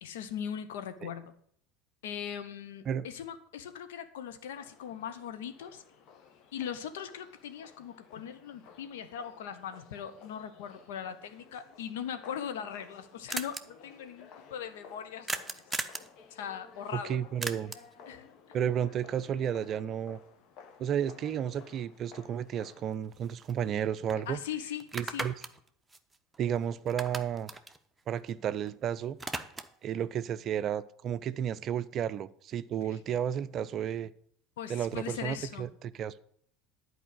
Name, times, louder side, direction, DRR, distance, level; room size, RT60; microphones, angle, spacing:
voice 1, 0.0-1.3 2.0-5.8 6.5-15.6 16.3-17.2 18.1-18.3 24.3-25.3 34.6-35.7, left 8 dB, 65° left, 0.9 m, -40 dB
sound 1, 4.5-23.0, left 6 dB, 50° left, 1.2 m, -55 dB
sound 2, 12.9-13.0 13.3-13.6 15.3-16.1 17.4-17.9 22.1-22.2 22.6-23.8 24.1-24.2 24.8-26.6 26.9-28.7 29.0-29.8, right 2 dB, 10° right, 0.8 m, -38 dB
voice 2, 16.9-17.7 18.5-20.2 20.8-24.4 24.9-25.3 26.4-27.5 28.1-29.2 29.8-34.1 34.7-36.2, right 9 dB, 40° right, 0.4 m, -32 dB
11.0 x 4.8 x 7.8 m
figure-of-eight pair, 70°, 0 cm